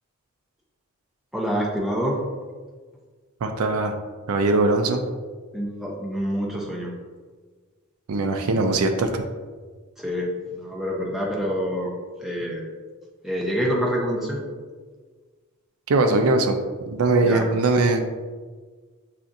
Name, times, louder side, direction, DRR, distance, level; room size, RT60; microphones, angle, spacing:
voice 1, 1.3-2.2 5.5-6.9 10.0-11.9 12.2-12.6 13.2-14.4 17.2-17.4, equal, ahead, -3 dB, 0.6 m, -26 dB
voice 2, 3.4-3.9 4.3-5.0 8.1-9.2 15.9-16.6 16.9-18.0, right 3 dB, 85° right, 6 dB, 0.4 m, -21 dB
7.0 x 2.5 x 2.6 m, 1.5 s
head